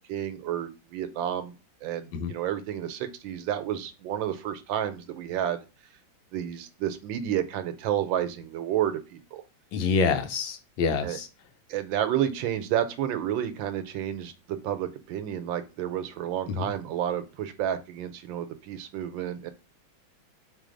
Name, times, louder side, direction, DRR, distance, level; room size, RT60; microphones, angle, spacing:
voice 1, 0.1-1.5 1.8-5.6 6.3-9.4 11.0-11.2 11.7-19.5, right 10 dB, 80° right, 9 dB, 1.3 m, -30 dB
voice 2, 9.7-11.3 16.5-16.7, left 5 dB, 85° left, 8 dB, 1.5 m, -27 dB
3.9 x 3.3 x 3.7 m, 0.29 s
omnidirectional pair, 2.1 m